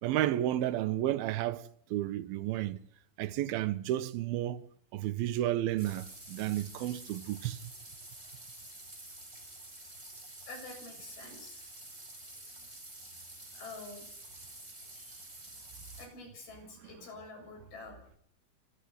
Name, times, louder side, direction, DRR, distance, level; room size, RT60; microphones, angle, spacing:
voice 1, 0.0-2.8 3.2-4.6 4.9-7.6, right 13 dB, 85° right, 2.9 m, -32 dB
sound 1, 5.8-16.1, right 1 dB, 15° right, 5.6 m, -49 dB
voice 2, 10.5-11.7 13.5-14.1 14.9-15.1 16.0-18.0, left 3 dB, 85° left, 9.8 m, -47 dB
24.5 x 14.5 x 9.6 m
omnidirectional pair, 4.2 m